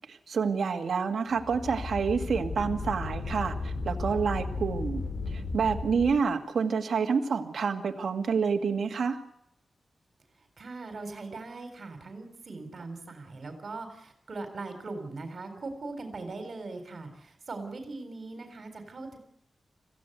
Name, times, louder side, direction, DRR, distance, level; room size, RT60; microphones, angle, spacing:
voice 1, 0.1-9.2, right 5 dB, 75° right, 4 dB, 2.0 m, -28 dB
sound 1, 1.3-6.2, left 3 dB, 65° left, 4.0 m, -35 dB
voice 2, 10.6-19.2, right 3 dB, 55° right, 7 dB, 4.1 m, -40 dB
26.5 x 16.0 x 8.1 m, 0.72 s
wide cardioid pair, 120°, 0 cm